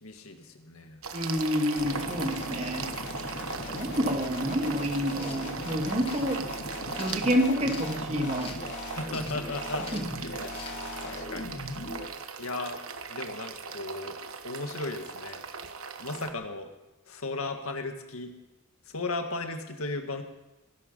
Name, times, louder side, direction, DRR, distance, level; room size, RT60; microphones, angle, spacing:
voice 1, 0.0-1.0 3.3-4.0 8.9-9.9 10.2-10.5 11.0-11.8 12.4-12.8 13.1-14.2 14.4-15.4 16.0-16.7 17.1-18.3 18.9-20.2, left 3 dB, 85° left, 6 dB, 1.9 m, -36 dB
sound 1, 1.0-16.3, right 5 dB, 70° right, 1.2 m, -39 dB
voice 2, 1.1-2.9 3.7-6.4 7.0-8.6 9.9-10.0, equal, 30° right, 4 dB, 1.9 m, -28 dB
sound 2, 1.8-12.1, left 1 dB, 60° left, 2.8 m, -38 dB
sound 3, 5.1-5.4 6.0-6.3 6.9-7.9 8.4-8.7 9.1-9.5 9.8-10.1 10.5-10.8, left 4 dB, 25° left, 1.8 m, -44 dB
21.5 x 12.0 x 5.6 m, 0.99 s
head